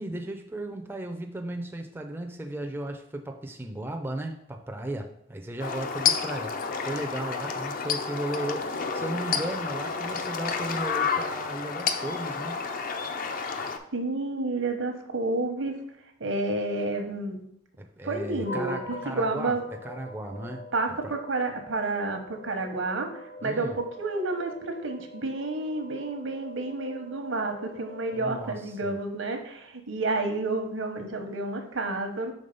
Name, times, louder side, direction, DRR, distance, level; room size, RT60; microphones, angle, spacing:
voice 1, 0.0-12.6 17.8-19.6 19.8-20.7 21.0-21.1 23.4-23.8 28.2-28.9, right 1 dB, 10° right, 3 dB, 0.4 m, -35 dB
sound 1, 5.6-13.8, left 5 dB, 45° left, 0.5 m, -30 dB
voice 2, 13.9-15.8 16.2-17.4 18.0-19.6 20.7-32.3, right 2 dB, 80° right, 5 dB, 0.9 m, -30 dB
sound 2, 18.4-28.9, left 1 dB, 75° left, 1.8 m, -43 dB
5.3 x 3.6 x 5.2 m, 0.76 s
head